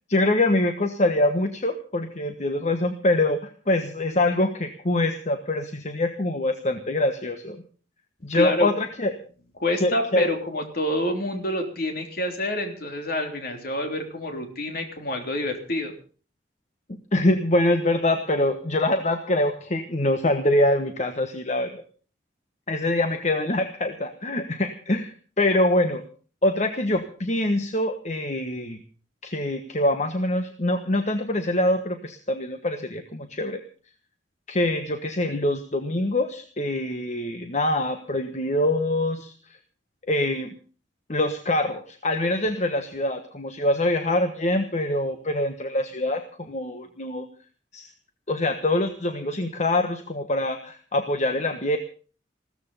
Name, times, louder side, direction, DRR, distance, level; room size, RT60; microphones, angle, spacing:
voice 1, 0.1-7.6 8.2-9.1 9.8-10.3 17.1-21.8 22.7-26.1 26.4-28.8 29.2-33.6 34.5-39.3 40.1-40.5 41.1-47.3 47.7-47.9 48.3-51.8, left 1 dB, 40° left, 7 dB, 1.3 m, -24 dB
voice 2, 8.3-8.7 9.6-15.9, left 1 dB, 55° left, 4 dB, 3.5 m, -27 dB
16.0 x 14.0 x 5.6 m, 0.40 s
head